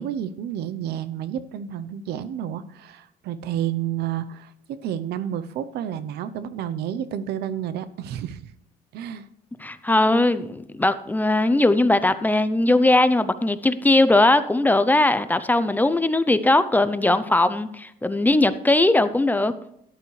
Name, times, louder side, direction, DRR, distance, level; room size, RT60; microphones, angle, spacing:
voice 1, 0.0-8.5 8.9-9.3, right 10 dB, 75° right, 13 dB, 0.8 m, -30 dB
voice 2, 9.6-19.5, left 2 dB, 10° left, 12 dB, 0.6 m, -19 dB
12.5 x 11.0 x 3.3 m, 0.78 s
cardioid pair, 110°, 17 cm